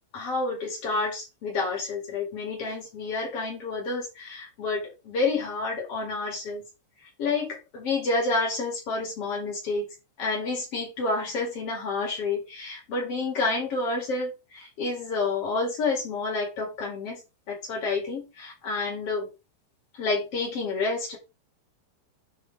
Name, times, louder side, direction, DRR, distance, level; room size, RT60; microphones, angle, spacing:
voice 1, 0.1-6.6 7.2-9.9 10.2-17.2 17.5-19.3 19.9-21.2, left 3 dB, 30° left, -2 dB, 5.2 m, -29 dB
11.0 x 5.9 x 4.7 m, 0.27 s
omnidirectional pair, 5.5 m